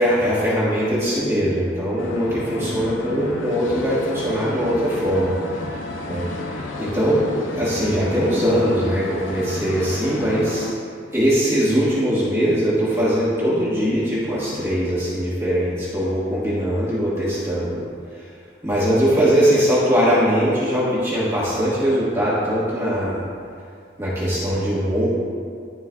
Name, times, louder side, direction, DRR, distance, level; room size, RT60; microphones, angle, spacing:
voice 1, 0.0-5.4 6.0-6.3 6.8-7.2 7.6-10.7 11.1-17.8 18.6-23.2 24.0-25.1, equal, 15° right, -10 dB, 1.3 m, -21 dB
sound 1, 2.0-10.7, left 2 dB, 80° left, 0.6 m, -32 dB
12.0 x 4.5 x 2.3 m, 2.2 s
head